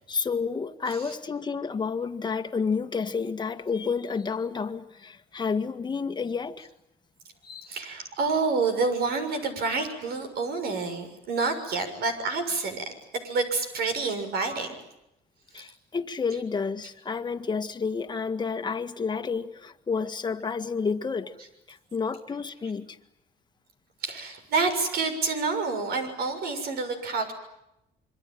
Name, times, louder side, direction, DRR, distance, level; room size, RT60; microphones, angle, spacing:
voice 1, 0.1-6.7 7.5-7.7 15.5-21.3 21.7-22.9, left 5 dB, 25° left, 1.8 m, -30 dB
voice 2, 7.7-12.9 13.2-14.7 24.0-27.3, right 4 dB, 65° right, 6.8 m, -28 dB
27.0 x 24.0 x 9.2 m
cardioid pair, 110°, 17 cm